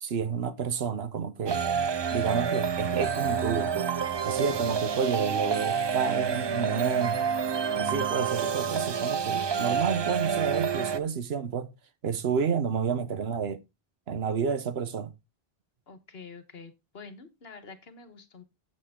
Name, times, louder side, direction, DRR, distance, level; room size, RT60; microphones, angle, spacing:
voice 1, 0.0-1.6 2.1-3.9 4.2-7.2 7.8-11.7 12.0-13.6 14.1-15.1, right 6 dB, 75° right, 1.1 m, -30 dB
Ethereal Orchestra, 1.5-11.0, right 6 dB, 45° right, 0.3 m, -28 dB
voice 2, 15.9-18.4, left 4 dB, 70° left, 1.5 m, -47 dB
8.6 x 7.8 x 3.6 m
omnidirectional pair, 1.0 m